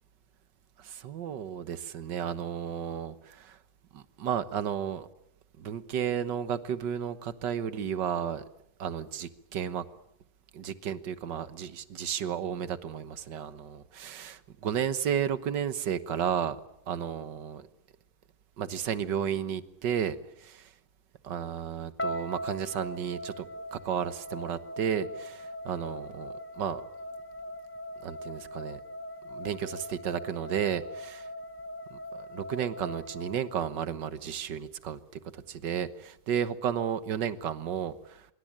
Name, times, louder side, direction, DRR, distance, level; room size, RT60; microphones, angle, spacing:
voice 1, 0.8-3.6 3.9-5.1 5.6-8.4 8.8-9.9 10.5-16.6 16.9-17.7 18.6-20.7 21.2-26.8 28.0-28.8 29.3-31.3 31.9-35.0 35.3-38.3, right 8 dB, 80° right, 13 dB, 1.9 m, -33 dB
sound 1, 22.0-34.1, equal, 15° left, 0.5 m, -41 dB
25.0 x 23.5 x 8.9 m, 0.78 s
omnidirectional pair, 1.9 m